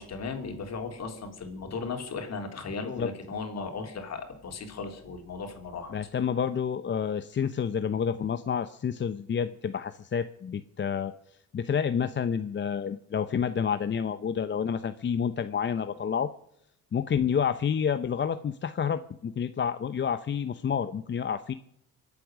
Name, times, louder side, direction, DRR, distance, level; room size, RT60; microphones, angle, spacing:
voice 1, 0.0-6.0, left 4 dB, 60° left, 4 dB, 3.5 m, -36 dB
voice 2, 5.9-11.1 11.5-16.3 16.9-21.5, left 7 dB, 40° left, 11 dB, 0.7 m, -29 dB
24.5 x 8.6 x 6.2 m, 0.76 s
cardioid pair, 90°, 30 cm